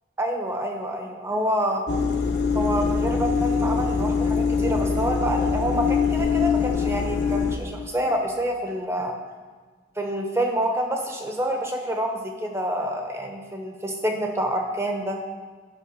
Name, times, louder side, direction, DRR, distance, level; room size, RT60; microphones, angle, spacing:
voice 1, 0.2-1.8 2.5-9.2 10.0-15.2, right 1 dB, 15° right, 2 dB, 0.9 m, -27 dB
sound 1, 1.9-7.6, left 5 dB, 55° left, 0.9 m, -23 dB
9.8 x 5.6 x 6.4 m, 1.5 s
head